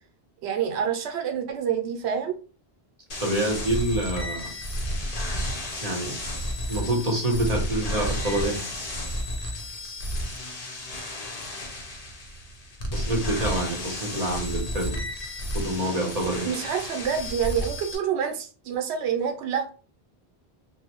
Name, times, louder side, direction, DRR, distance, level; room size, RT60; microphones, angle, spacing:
voice 1, 0.4-2.4 16.4-19.7, right 8 dB, 85° right, 5 dB, 0.8 m, -27 dB
sound 1, 3.1-18.0, equal, 45° left, 0.6 m, -32 dB
voice 2, 3.2-4.5 5.8-6.2 6.7-8.6 12.9-15.0 15.5-16.5, right 1 dB, 40° right, 0 dB, 0.8 m, -27 dB
2.6 x 2.0 x 2.9 m, 0.38 s
omnidirectional pair, 1.1 m